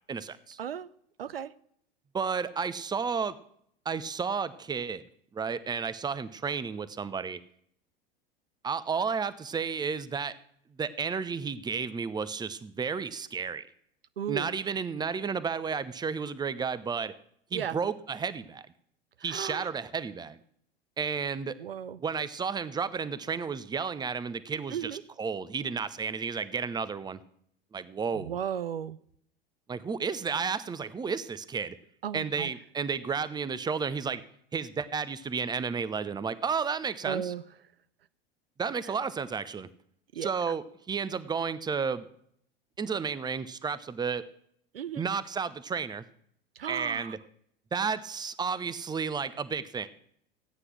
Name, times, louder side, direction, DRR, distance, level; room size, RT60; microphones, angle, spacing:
voice 1, 0.1-0.6 2.1-3.4 3.8-5.0 5.3-7.4 8.6-10.3 10.8-13.6 14.3-17.1 17.5-18.7 19.2-20.4 21.0-21.6 22.0-27.2 27.7-28.4 29.7-31.8 32.1-34.2 34.5-37.3 38.6-39.7 40.2-42.1 42.8-44.2 45.0-46.0 46.7-47.2 47.7-49.9, right 5 dB, 15° right, 16 dB, 0.9 m, -32 dB
voice 2, 1.2-1.5 14.2-14.5 17.5-17.8 19.3-19.7 21.6-22.0 24.7-25.0 28.2-29.0 32.0-32.5 37.0-37.4 40.2-40.3 44.7-45.0 46.6-47.1, right 9 dB, 80° right, 15 dB, 0.7 m, -35 dB
16.0 x 9.7 x 6.1 m, 0.67 s
figure-of-eight pair, 85°, 29 cm